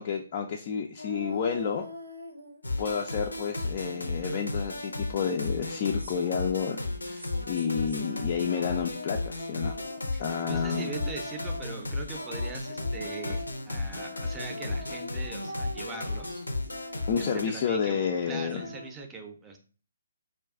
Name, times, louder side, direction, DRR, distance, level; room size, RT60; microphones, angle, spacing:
voice 1, 0.0-1.9 2.8-6.8 7.0-9.8 10.2-10.9 17.1-18.7, left 7 dB, 40° left, 1 dB, 0.3 m, -30 dB
sound 1, 1.0-3.0 3.3-19.0, equal, 85° right, 0.8 m, -43 dB
sound 2, 2.6-17.4, left 2 dB, 90° left, 0.6 m, -34 dB
voice 2, 10.1-16.5 17.2-19.6, right 3 dB, 15° right, 4 dB, 0.5 m, -41 dB
2.4 x 2.3 x 3.6 m, 0.39 s
figure-of-eight pair, 140°, 0 cm